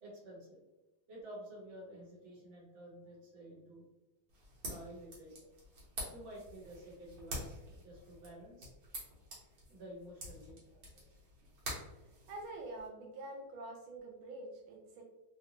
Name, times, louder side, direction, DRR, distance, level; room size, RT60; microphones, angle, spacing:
voice 1, 0.0-0.6 1.1-3.8 4.7-5.5 6.1-8.7 9.7-11.0, right 1 dB, 40° right, -5 dB, 1.2 m, -51 dB
sound 1, 4.3-12.9, right 1 dB, 65° right, 1.8 m, -48 dB
voice 2, 12.3-15.0, right 2 dB, 90° right, 0 dB, 1.5 m, -46 dB
3.9 x 2.2 x 2.8 m, 1.0 s
omnidirectional pair, 2.3 m